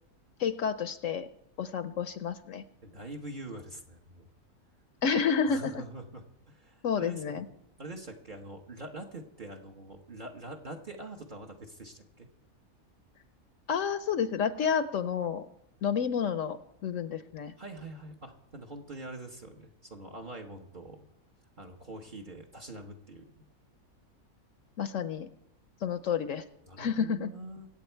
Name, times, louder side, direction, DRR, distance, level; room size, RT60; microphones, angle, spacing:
voice 1, 0.4-1.3 1.6-2.6 5.0-5.7 6.8-7.4 13.7-15.5 15.8-17.5 24.8-25.3 25.8-26.4 26.8-27.3, left 7 dB, 70° left, 12 dB, 1.0 m, -30 dB
voice 2, 2.8-4.3 5.5-7.5 7.8-12.3 17.6-21.1 21.6-23.5 26.7-27.7, right 2 dB, 35° right, 2 dB, 1.1 m, -44 dB
24.0 x 8.1 x 4.5 m, 0.79 s
omnidirectional pair, 1.5 m